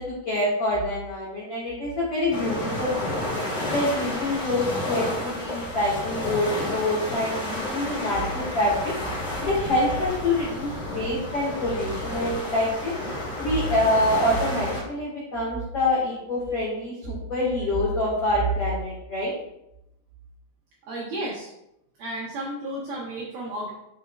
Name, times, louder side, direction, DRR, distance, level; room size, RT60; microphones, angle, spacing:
voice 1, 0.0-3.2 3.7-8.9 9.4-12.9 13.4-19.3, left 1 dB, 90° left, -7 dB, 1.3 m, -26 dB
sound 1, 2.3-14.8, left 1 dB, 30° left, 2.4 m, -31 dB
voice 2, 20.9-21.5 22.0-23.7, right 1 dB, 80° right, -4 dB, 2.2 m, -33 dB
10.5 x 5.2 x 2.4 m, 0.84 s
omnidirectional pair, 5.7 m